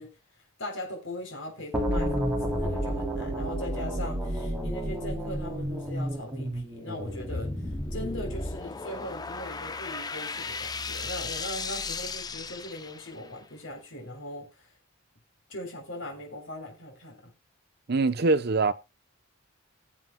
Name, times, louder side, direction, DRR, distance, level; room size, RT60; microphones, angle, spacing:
voice 1, 0.0-14.7 15.5-17.3, left 1 dB, 60° left, 3.5 m, -40 dB
sound 1, 1.7-8.6, equal, 10° right, 3.0 m, -31 dB
sound 2, 7.1-13.4, left 4 dB, 20° left, 0.5 m, -36 dB
voice 2, 17.9-18.7, right 3 dB, 50° right, 0.7 m, -23 dB
20.0 x 7.7 x 2.2 m
head